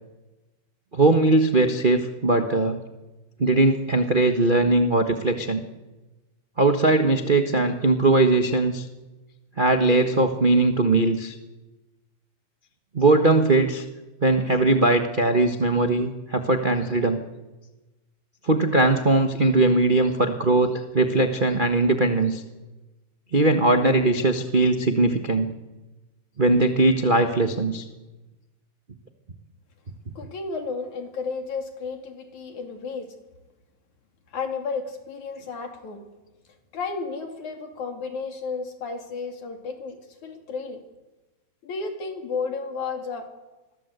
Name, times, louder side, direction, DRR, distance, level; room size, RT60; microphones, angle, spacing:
voice 1, 0.9-2.8 3.4-5.6 6.6-8.8 9.6-11.3 12.9-13.8 14.2-17.2 18.4-22.4 23.3-25.5 26.4-27.8, right 2 dB, 90° right, 5 dB, 0.4 m, -20 dB
voice 2, 30.2-33.1 34.3-36.0 36.7-40.8 41.6-43.3, left 4 dB, 75° left, 4 dB, 4.3 m, -32 dB
28.0 x 22.0 x 8.1 m, 1.2 s
omnidirectional pair, 3.4 m